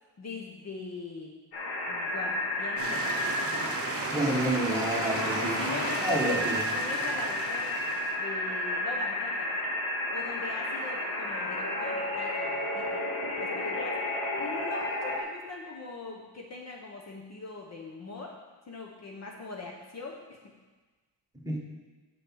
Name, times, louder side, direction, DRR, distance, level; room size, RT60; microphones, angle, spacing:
voice 1, 0.2-1.3 1.9-3.8 5.1-7.8 8.2-9.5 10.1-13.0 13.4-14.0 14.3-18.3 18.7-20.5, left 3 dB, 35° left, 0 dB, 0.9 m, -41 dB
sound 1, 1.5-15.2, left 1 dB, 60° left, 1.9 m, -32 dB
sound 2, 2.8-8.2, right 4 dB, 30° right, 0.9 m, -36 dB
voice 2, 4.1-5.6 6.0-6.6 21.4-21.6, right 1 dB, 10° right, -3 dB, 1.4 m, -29 dB
7.0 x 6.5 x 6.2 m, 1.3 s
cardioid pair, 160°, 44 cm